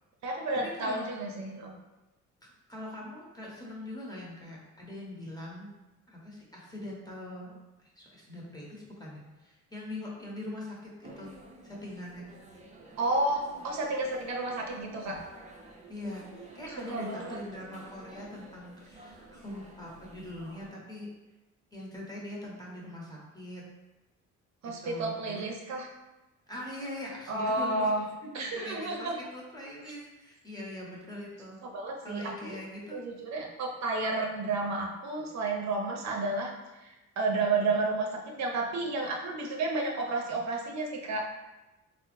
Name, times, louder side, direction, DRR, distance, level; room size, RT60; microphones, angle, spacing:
voice 1, 0.2-1.7 13.0-15.2 16.9-17.4 24.6-25.9 27.3-28.0 28.3-29.2 31.6-32.6 32.9-41.3, right 2 dB, 65° right, 0 dB, 0.6 m, -31 dB
voice 2, 2.4-5.7 6.1-7.6 8.0-11.3 11.6-12.3 15.9-21.1 21.7-23.6 24.8-25.4 26.5-27.9 28.4-31.6 32.0-33.0, left 1 dB, 15° left, -4 dB, 0.9 m, -42 dB
sound 1, 11.0-20.7, right 2 dB, 25° right, 0.5 m, -51 dB
3.3 x 2.1 x 3.0 m, 1.1 s
cardioid pair, 90°, 30 cm